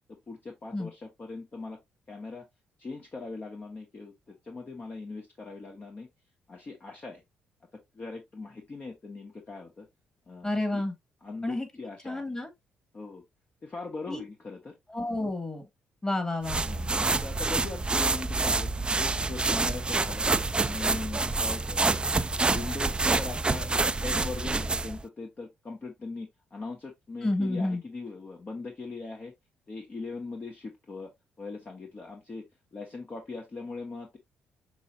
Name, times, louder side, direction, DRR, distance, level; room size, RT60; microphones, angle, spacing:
voice 1, 0.1-1.8 2.1-2.5 2.8-6.1 6.5-7.2 7.9-9.9 10.3-10.8 11.2-12.2 12.9-13.2 13.6-14.7 16.6-20.3 20.5-22.2 22.4-29.3 29.7-31.1 31.4-32.4 32.7-34.2, left 3 dB, 40° left, 1.0 m, -40 dB
voice 2, 10.4-10.9 11.4-11.7 12.0-12.5 14.1-14.2 14.9-15.6 16.0-16.6 27.2-27.8, left 2 dB, 15° left, 1.9 m, -30 dB
sound 1, 16.4-25.0, right 3 dB, 25° right, 0.4 m, -27 dB
6.1 x 3.0 x 2.5 m
hypercardioid pair, 45°, 4 cm